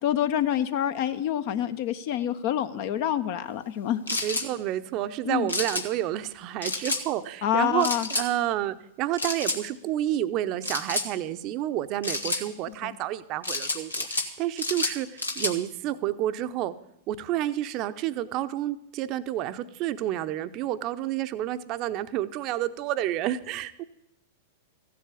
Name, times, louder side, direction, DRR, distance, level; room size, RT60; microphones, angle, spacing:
voice 1, 0.0-4.0 5.2-5.5 7.4-8.1 12.8-12.9, left 10 dB, 50° left, 10 dB, 1.0 m, -27 dB
sound 1, 4.1-4.5 5.5-5.8 6.6-7.0 7.8-8.3 9.2-9.6 10.6-11.1 12.0-12.4 13.4-14.3 14.6-15.5, left 2 dB, 90° left, 1.6 m, -29 dB
voice 2, 4.2-16.7 17.1-23.8, right 13 dB, 40° right, 11 dB, 0.8 m, -30 dB
15.0 x 7.7 x 8.3 m, 0.80 s
figure-of-eight pair, 100°, 0 cm